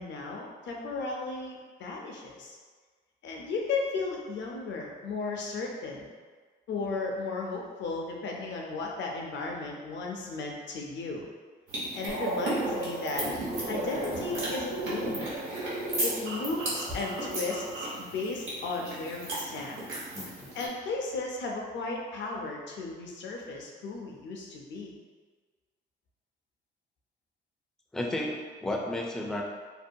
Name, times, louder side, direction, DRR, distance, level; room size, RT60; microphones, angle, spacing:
voice 1, 0.0-2.6 3.2-6.1 6.7-11.3 11.9-13.3 13.7-15.4 16.0-19.9 20.5-24.9, left 3 dB, 65° left, 0 dB, 0.6 m, -35 dB
sound 1, 11.7-20.7, right 1 dB, 90° right, 1.1 m, -37 dB
sound 2, 12.1-18.0, right 1 dB, 60° right, 0.7 m, -35 dB
voice 2, 20.1-20.5 27.9-29.4, left 1 dB, 5° left, -1 dB, 0.3 m, -33 dB
2.6 x 2.3 x 2.6 m, 1.5 s
cardioid pair, 90°, 20 cm